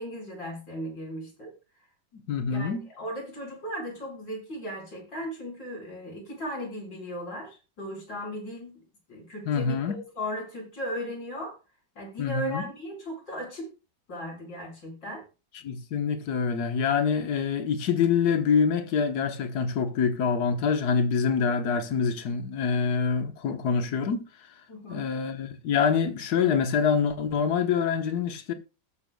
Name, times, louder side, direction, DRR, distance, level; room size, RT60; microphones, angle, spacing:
voice 1, 0.0-1.5 2.5-8.8 9.1-11.6 12.0-13.7 14.1-15.2 24.7-25.1, equal, 80° left, 5.6 m, -37 dB
voice 2, 2.1-2.8 9.5-10.0 12.2-12.7 15.6-24.2 24.9-28.5, left 6 dB, 60° left, 1.6 m, -26 dB
20.0 x 6.7 x 2.3 m
omnidirectional pair, 2.0 m